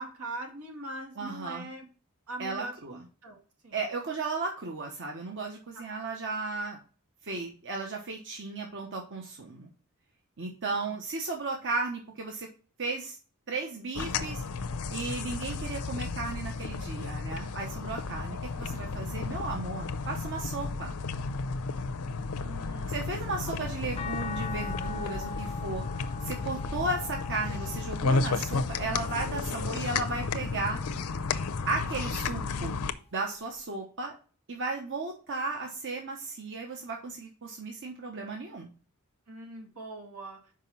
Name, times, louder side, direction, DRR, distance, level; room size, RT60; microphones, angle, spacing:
voice 1, 0.0-1.9 2.3-3.4 3.6-3.8 10.7-10.9 22.4-23.5 39.3-40.4, right 2 dB, 85° right, 2 dB, 2.1 m, -42 dB
voice 2, 1.2-1.7 2.4-3.0 3.7-6.8 7.2-9.7 10.4-12.5 12.8-13.2 13.5-14.4 14.9-20.9 22.9-25.8 26.2-30.8 31.7-32.8 33.1-34.1 34.5-38.7, right 3 dB, 60° right, 1 dB, 1.1 m, -35 dB
sound 1, 13.9-32.9, left 4 dB, 80° left, 0.6 m, -33 dB
sound 2, 24.0-30.3 30.8-32.2 33.6-33.7, left 5 dB, 30° left, 0.5 m, -43 dB
5.4 x 5.0 x 5.4 m, 0.38 s
head